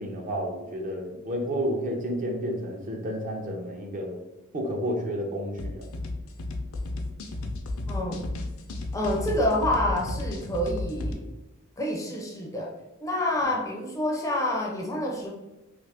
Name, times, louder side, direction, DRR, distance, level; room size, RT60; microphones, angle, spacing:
voice 1, 0.0-4.2 4.5-5.8, equal, 40° right, 1 dB, 0.6 m, -31 dB
sound 1, 5.6-11.1, left 2 dB, 80° left, 0.4 m, -33 dB
voice 2, 7.9-8.3 8.9-11.2 11.8-12.7 13.0-15.3, left 1 dB, 15° left, -1 dB, 0.4 m, -28 dB
2.9 x 2.5 x 3.2 m, 1.0 s
head